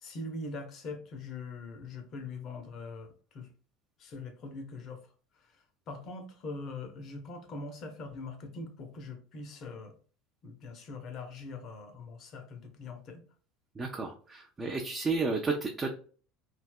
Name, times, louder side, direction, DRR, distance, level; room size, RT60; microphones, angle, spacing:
voice 1, 0.0-3.5 4.0-5.0 5.9-9.9 10.4-13.3, left 3 dB, 45° left, 0.7 m, -42 dB
voice 2, 13.8-15.9, right 3 dB, 25° right, 0.5 m, -32 dB
3.3 x 2.7 x 2.3 m
figure-of-eight pair, 70°, 0 cm